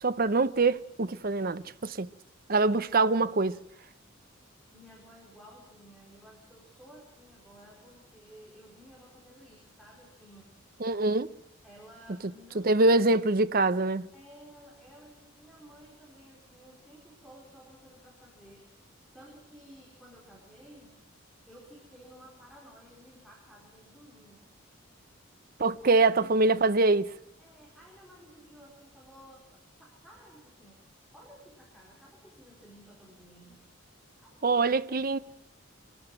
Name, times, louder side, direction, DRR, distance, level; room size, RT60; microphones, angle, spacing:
voice 1, 0.0-2.1 2.5-3.6 10.8-11.3 12.5-14.1 25.6-27.1 34.4-35.2, right 3 dB, 45° right, 0.7 m, -24 dB
voice 2, 2.4-3.0 4.7-10.6 11.6-13.0 14.1-18.7 19.1-21.0 21.4-24.5 25.8-26.6 27.4-30.8 31.1-33.6 34.2-34.3, equal, ahead, 4.4 m, -54 dB
24.0 x 13.5 x 9.0 m
head